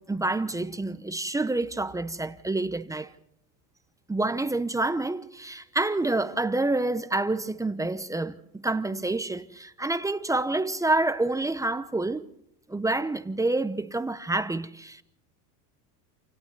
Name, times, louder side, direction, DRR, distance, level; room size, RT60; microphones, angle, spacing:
voice 1, 0.0-3.1 4.1-12.3 12.7-15.0, right 2 dB, 5° right, 0.8 m, -28 dB
29.0 x 28.0 x 4.1 m
supercardioid pair, 120°, 49 cm